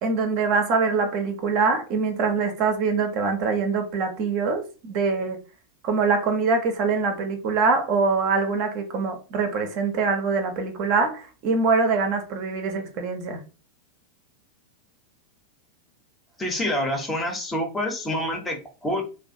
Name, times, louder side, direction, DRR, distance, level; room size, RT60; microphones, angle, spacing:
voice 1, 0.0-5.4 5.8-13.4, right 4 dB, 45° right, 0.5 m, -24 dB
voice 2, 16.4-19.0, left 1 dB, 15° left, 0.6 m, -27 dB
2.3 x 2.2 x 2.5 m
figure-of-eight pair, 90°, 0 cm